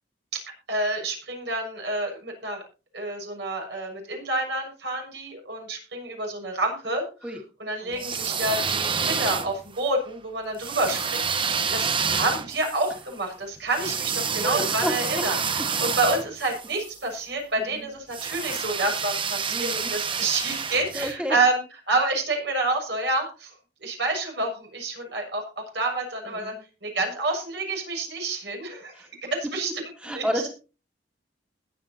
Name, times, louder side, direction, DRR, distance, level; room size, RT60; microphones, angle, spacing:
voice 1, 0.7-2.6 2.9-7.3 7.6-23.5 23.8-26.5 26.8-28.9 29.2-29.7 30.1-30.2, right 2 dB, 70° right, 2 dB, 6.4 m, -28 dB
sound 1, 7.9-9.8 10.6-17.0 18.1-21.1, right 6 dB, 30° right, 0.9 m, -28 dB
voice 2, 14.4-15.3 17.7-17.9 19.5-19.9 20.9-21.4 26.3-26.6 28.9-29.1 29.6-29.7 30.0-30.5, equal, 5° right, 1 dB, 2.2 m, -31 dB
20.5 x 8.9 x 2.8 m, 0.33 s
head